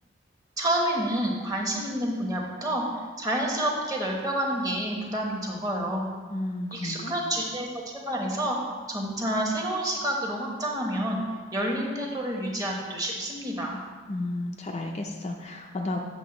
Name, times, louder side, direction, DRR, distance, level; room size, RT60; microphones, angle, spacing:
voice 1, 0.6-2.8 3.2-6.1 6.7-7.7 8.1-8.6 8.9-11.2 11.5-13.8, right 1 dB, 20° right, -1 dB, 1.0 m, -28 dB
voice 2, 6.3-7.1 14.1-16.0, left 2 dB, 30° left, 2 dB, 0.4 m, -32 dB
8.3 x 3.5 x 5.9 m, 1.5 s
head